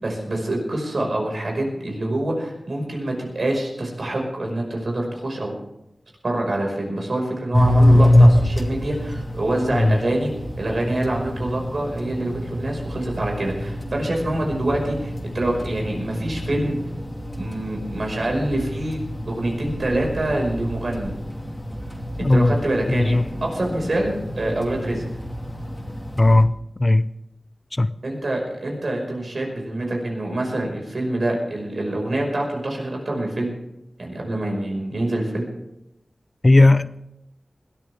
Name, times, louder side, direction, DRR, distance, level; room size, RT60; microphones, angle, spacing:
voice 1, 0.0-5.5 6.2-10.3 10.6-16.8 17.4-19.0 19.3-21.1 22.2-25.0 28.0-33.5 34.0-35.4, right 1 dB, 70° right, 5.4 m, -26 dB
Machine Multi Stage, 7.5-26.4, left 1 dB, 15° left, 2.7 m, -24 dB
voice 2, 22.2-22.6 22.9-23.3 26.2-26.5 26.8-27.1 27.7-27.9 36.4-37.0, left 2 dB, 35° left, 0.5 m, -16 dB
21.0 x 13.5 x 3.6 m
wide cardioid pair, 65°, 0 cm